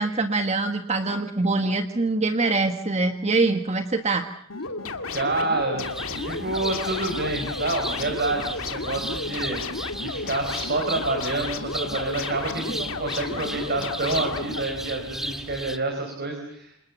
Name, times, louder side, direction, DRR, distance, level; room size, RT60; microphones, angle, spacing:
voice 1, 0.0-4.3, right 3 dB, 30° right, 7 dB, 1.3 m, -24 dB
sound 1, 4.5-14.6, left 3 dB, 80° left, 2.3 m, -33 dB
voice 2, 5.1-16.7, right 2 dB, 50° right, 4 dB, 4.6 m, -28 dB
sound 2, 5.8-15.8, equal, ahead, 1.6 m, -36 dB
28.5 x 27.0 x 7.3 m, 0.68 s
head